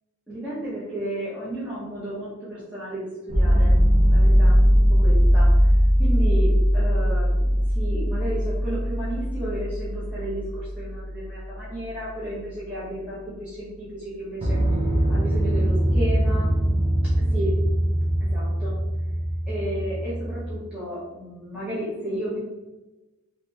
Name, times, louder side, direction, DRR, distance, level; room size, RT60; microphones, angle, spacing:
voice 1, 0.3-3.7 4.1-5.7 6.0-14.6 15.1-16.5 17.3-17.5 18.2-18.7 19.5-22.4, right 1 dB, 5° right, -10 dB, 0.8 m, -33 dB
sound 1, 3.3-11.1 14.4-20.5, equal, 35° right, 0.8 m, -20 dB
3.0 x 2.9 x 3.4 m, 1.1 s
head